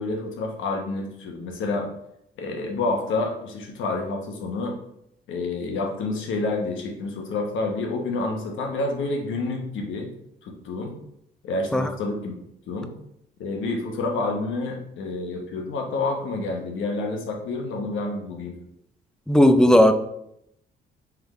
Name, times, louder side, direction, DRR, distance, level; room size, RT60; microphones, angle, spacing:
voice 1, 0.0-1.9 2.4-4.8 5.3-10.1 10.4-10.9 11.4-12.3 12.7-12.9 13.4-18.6, left 3 dB, 80° left, 2 dB, 1.0 m, -28 dB
voice 2, 19.3-19.9, equal, 5° left, 8 dB, 0.4 m, -15 dB
3.5 x 3.4 x 3.7 m, 0.76 s
cardioid pair, 90°, 20 cm